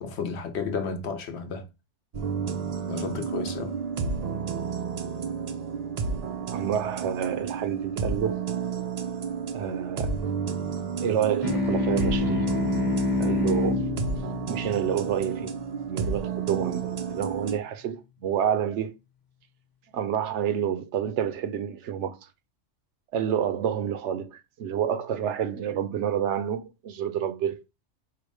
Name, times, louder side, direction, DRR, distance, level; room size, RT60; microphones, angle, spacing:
voice 1, 0.0-1.7 2.9-3.7, left 5 dB, 65° left, 1.0 m, -32 dB
sound 1, 2.1-17.6, right 6 dB, 55° right, 0.4 m, -31 dB
voice 2, 6.5-8.4 9.5-10.2 11.0-12.5 13.2-13.9 14.5-15.6 15.9-18.9 19.9-22.2 23.1-27.6, right 9 dB, 70° right, 0.8 m, -28 dB
sound 2, 11.4-16.3, left 3 dB, 20° left, 0.8 m, -28 dB
4.8 x 2.1 x 4.7 m
omnidirectional pair, 1.3 m